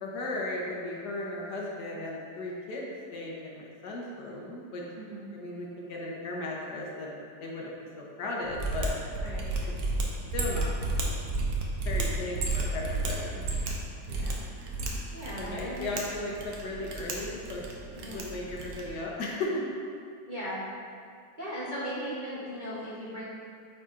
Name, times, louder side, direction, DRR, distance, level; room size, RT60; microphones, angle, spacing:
voice 1, 0.0-4.8 5.3-8.9 10.3-10.8 11.8-13.4 15.4-17.6 18.0-19.6, left 2 dB, 65° left, -3 dB, 1.3 m, -36 dB
Mechanisms, 8.5-19.0, right 2 dB, 80° right, 1.5 m, -33 dB
voice 2, 14.1-14.4 15.1-15.9 18.0-18.3 20.3-20.6 21.4-23.2, equal, 35° right, -10 dB, 0.8 m, -38 dB
9.3 x 4.2 x 2.5 m, 2.3 s
omnidirectional pair, 2.0 m